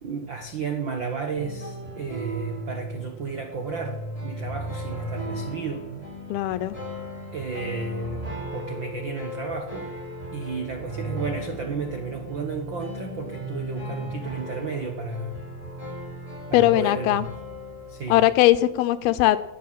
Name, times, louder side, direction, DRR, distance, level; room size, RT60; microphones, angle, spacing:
voice 1, 0.0-6.0 7.3-9.9 10.3-15.3 16.5-17.3 17.9-18.2, right 4 dB, 80° right, 5 dB, 1.0 m, -33 dB
sound 1, 1.3-18.3, equal, 10° right, 7.2 m, -36 dB
voice 2, 6.3-6.8 16.5-17.3 18.1-19.4, left 15 dB, 90° left, 13 dB, 2.9 m, -20 dB
17.5 x 9.7 x 7.6 m, 0.91 s
omnidirectional pair, 4.3 m